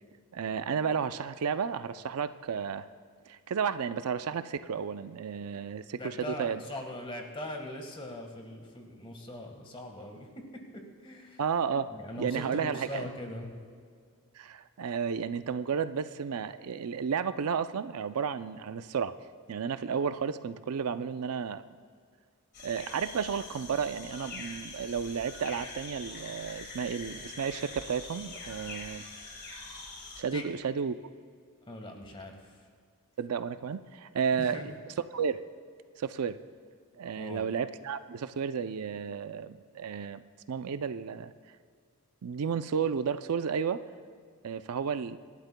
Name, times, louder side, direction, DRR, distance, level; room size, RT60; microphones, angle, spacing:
voice 1, 0.3-2.9 3.3-6.6 11.4-11.9 12.2-13.1 14.4-19.1 19.5-21.6 22.6-29.1 30.2-30.9 33.2-35.4 36.0-36.4 37.0-40.2 40.5-41.3 42.2-43.8 44.4-45.2, right 6 dB, 75° right, 12 dB, 0.4 m, -32 dB
voice 2, 6.0-11.4 11.9-13.6 30.3-30.6 31.7-32.6 34.4-34.7 37.2-37.4, left 1 dB, 25° left, 3 dB, 1.5 m, -41 dB
sound 1, 22.5-30.2, left 3 dB, 45° left, 1.9 m, -44 dB
25.5 x 11.5 x 2.2 m, 2.1 s
head